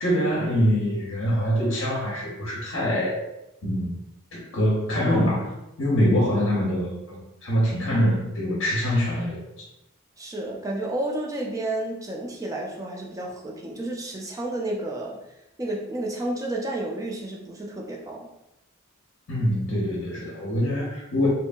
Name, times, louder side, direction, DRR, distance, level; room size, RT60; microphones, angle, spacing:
voice 1, 0.0-3.2 3.6-4.0 4.3-5.5 5.8-9.6 19.3-21.3, equal, 55° left, -3 dB, 0.6 m, -24 dB
voice 2, 10.2-15.2 15.6-18.3, right 1 dB, 15° right, -1 dB, 0.4 m, -31 dB
2.8 x 2.5 x 2.3 m, 0.89 s
head